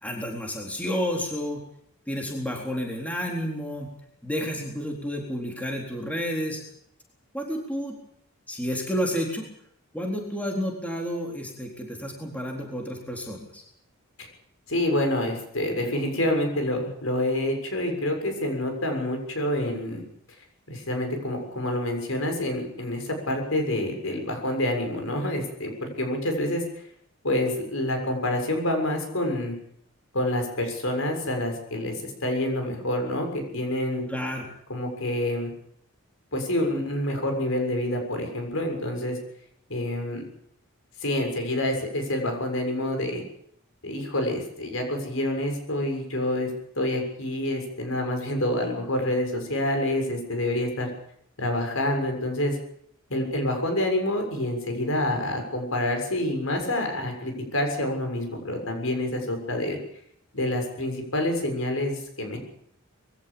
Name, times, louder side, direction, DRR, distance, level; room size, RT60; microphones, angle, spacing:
voice 1, 0.0-1.6 2.1-3.9 4.2-6.6 7.3-8.0 8.5-9.4 9.9-13.6 34.1-34.5, equal, 5° left, 0 dB, 3.9 m, -30 dB
voice 2, 14.7-20.0 20.7-26.6 27.2-29.5 30.1-34.0 34.7-35.5 36.3-39.2 39.7-40.2 41.0-43.2 43.8-46.5 46.8-50.9 51.4-52.6 53.1-59.8 60.3-62.4, left 1 dB, 65° left, 4 dB, 6.9 m, -27 dB
22.5 x 16.5 x 8.7 m, 0.70 s
head